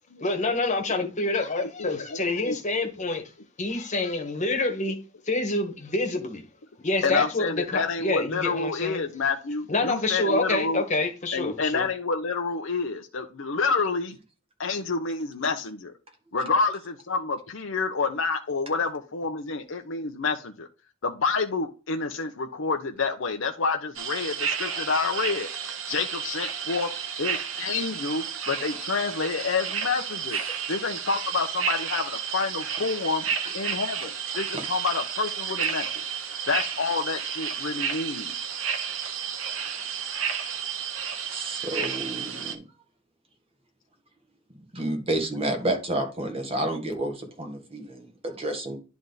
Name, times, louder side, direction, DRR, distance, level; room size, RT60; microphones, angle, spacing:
voice 1, 0.2-3.3 3.6-4.9 5.3-6.4 6.8-9.0 9.7-11.9, left 2 dB, 40° left, 1.5 m, -27 dB
voice 2, 1.6-2.6 7.0-10.8 11.3-14.2 14.6-15.9 16.3-20.7 21.0-25.5 25.9-26.9 27.2-30.4 30.7-33.2 33.5-36.1 36.5-38.3, left 4 dB, 70° left, 0.8 m, -28 dB
sound 1, 23.9-42.5, right 7 dB, 90° right, 1.1 m, -32 dB
voice 3, 41.3-42.6 44.7-48.8, right 1 dB, 30° right, 1.8 m, -30 dB
10.5 x 3.5 x 4.0 m
head